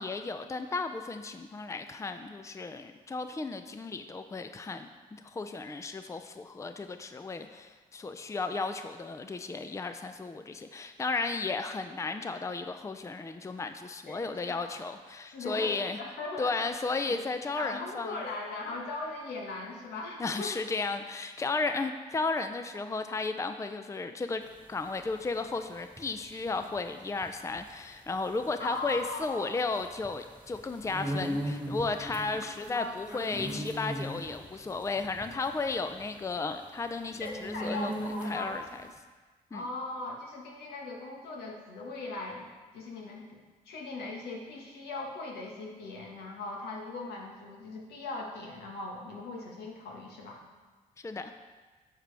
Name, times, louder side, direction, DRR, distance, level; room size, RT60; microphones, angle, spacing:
voice 1, 0.0-16.0 16.4-18.2 20.2-24.4 24.7-38.8 39.5-39.6 51.0-51.3, left 3 dB, 20° left, 8 dB, 0.5 m, -34 dB
voice 2, 14.1-14.8 15.3-16.6 17.1-17.2 17.6-20.6 28.6-29.5 32.7-33.3 33.7-33.8 37.2-38.6 39.5-42.5 42.7-43.4 43.6-50.4, left 3 dB, 85° left, -1 dB, 1.6 m, -39 dB
sound 1, 24.5-38.7, equal, 10° right, 1.7 m, -39 dB
8.9 x 7.4 x 3.4 m, 1.3 s
supercardioid pair, 65°, 16 cm